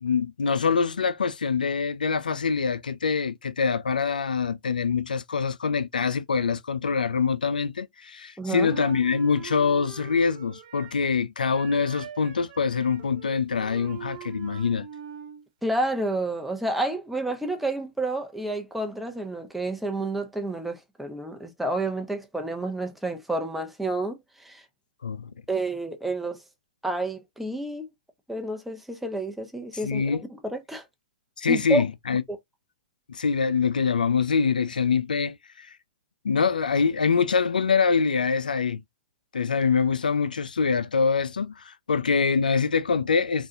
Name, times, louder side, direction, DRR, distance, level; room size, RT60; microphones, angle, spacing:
voice 1, 0.0-14.9 25.0-25.3 29.8-30.2 31.4-32.2 33.1-35.7 36.2-38.8 39.3-43.5, left 5 dB, 85° left, 0.4 m, -24 dB
voice 2, 8.4-8.7 15.6-24.6 25.5-26.4 26.8-27.9 28.3-30.8 31.5-31.8, right 2 dB, 5° right, 0.8 m, -30 dB
Wind instrument woodwind instrument, 8.6-11.1 11.4-15.5, right 9 dB, 45° right, 0.9 m, -42 dB
3.7 x 2.4 x 2.6 m
hypercardioid pair, 125°, 4 cm